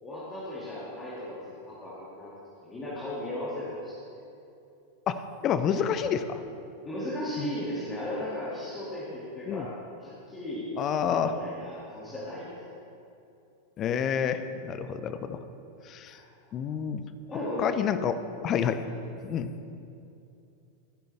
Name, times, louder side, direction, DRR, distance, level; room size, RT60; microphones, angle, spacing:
voice 1, 0.0-2.3 2.6-4.0 6.8-9.7 10.0-10.7 11.0-12.6 16.1-16.5 17.3-17.6 18.9-19.0, left 1 dB, 15° left, -9 dB, 2.5 m, -36 dB
voice 2, 5.1-6.4 7.4-7.5 9.5-9.7 10.8-11.3 13.8-15.4 15.9-16.2 16.5-17.0 17.6-18.1 18.4-18.8 19.2-19.5, left 8 dB, 30° left, 10 dB, 0.7 m, -28 dB
15.0 x 10.5 x 3.5 m, 2.7 s
figure-of-eight pair, 90°, 0 cm